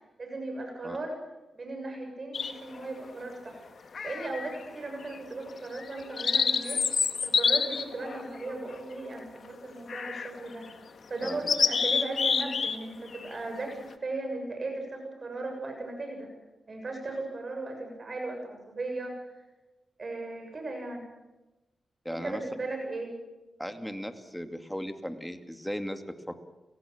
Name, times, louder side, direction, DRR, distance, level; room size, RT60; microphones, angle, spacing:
voice 1, 0.2-1.1 1.5-3.6 4.0-6.8 7.2-10.7 11.1-16.3 16.7-19.1 20.0-21.1 22.1-23.1, right 2 dB, 45° right, 3 dB, 7.1 m, -37 dB
sound 1, 2.3-2.8 3.9-4.6 5.0-5.2 5.7-9.2 9.9-10.4 10.7-10.8 11.2-12.8 13.1-13.3, left 5 dB, 65° left, 1.8 m, -28 dB
voice 2, 22.0-22.4 23.6-26.4, equal, ahead, 7 dB, 2.5 m, -37 dB
29.5 x 18.0 x 7.3 m, 1.0 s
cardioid pair, 70°, 0 cm